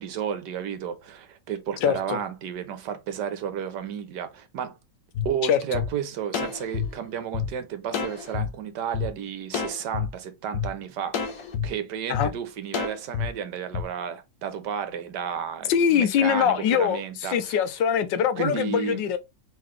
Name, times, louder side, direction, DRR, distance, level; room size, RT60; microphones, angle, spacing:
voice 1, 0.0-4.7 5.2-17.6 18.4-19.0, right 8 dB, 70° right, 1.4 m, -32 dB
voice 2, 1.8-2.2 5.4-5.8 12.1-12.3 15.7-19.2, left 8 dB, 85° left, 1.3 m, -23 dB
sound 1, 5.1-5.3 5.7-5.9 6.3-7.5 7.9-8.5 8.9-9.1 9.5-10.1 10.5-10.7 11.1-11.7 12.1-12.3 12.7-13.3 13.7-13.8, left 7 dB, 65° left, 1.3 m, -28 dB
3.8 x 3.7 x 3.1 m
omnidirectional pair, 2.0 m